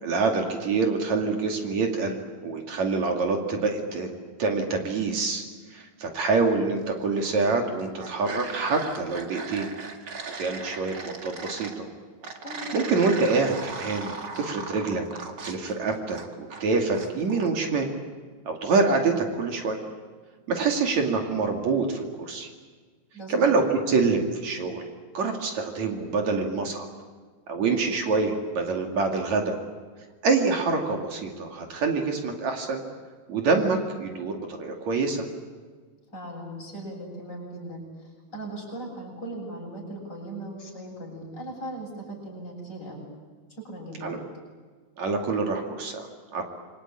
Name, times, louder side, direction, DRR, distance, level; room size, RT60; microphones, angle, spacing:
voice 1, 0.0-2.2 2.4-4.1 4.4-5.4 5.7-9.7 10.4-11.9 12.7-17.9 18.5-19.8 20.5-22.5 23.3-24.8 25.1-26.9 27.5-29.6 30.2-32.8 33.3-35.3 44.0-44.2 45.0-46.4, right 4 dB, 70° right, 2 dB, 3.8 m, -26 dB
sound 1, 7.0-7.5 7.8-11.8 12.2-16.6 16.9-17.5, right 4 dB, 40° right, 2.4 m, -38 dB
voice 2, 23.1-23.5 36.1-43.1 43.5-44.2, right 1 dB, 35° left, -1 dB, 8.5 m, -38 dB
27.0 x 24.0 x 9.0 m, 1.5 s
omnidirectional pair, 3.4 m